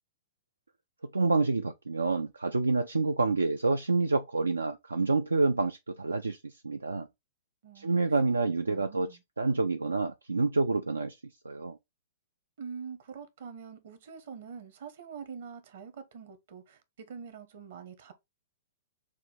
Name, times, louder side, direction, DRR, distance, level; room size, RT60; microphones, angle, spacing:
voice 1, 1.1-7.1 7.8-9.1 9.4-11.2 11.5-11.8, right 3 dB, 85° right, 0.3 m, -28 dB
voice 2, 7.6-8.0 8.7-9.2 12.6-18.1, right 6 dB, 55° right, 1.0 m, -45 dB
6.1 x 2.3 x 3.3 m
figure-of-eight pair, 110°, 0 cm